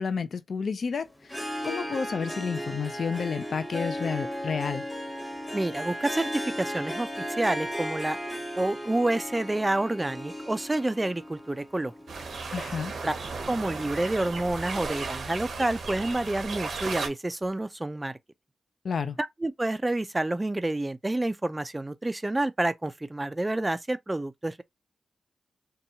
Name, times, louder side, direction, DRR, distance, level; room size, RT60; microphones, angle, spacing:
voice 1, 0.0-4.8 12.5-12.9 18.8-19.2, left 6 dB, 65° left, 0.4 m, -31 dB
Harp, 1.2-13.1, equal, 15° left, 0.9 m, -36 dB
voice 2, 5.5-8.2 8.6-11.9 13.0-13.1 13.5-18.1 19.2-24.6, right 2 dB, 20° right, 0.3 m, -28 dB
sound 1, 12.1-17.1, right 4 dB, 75° right, 0.8 m, -35 dB
2.8 x 2.2 x 2.7 m
cardioid pair, 65°, 0 cm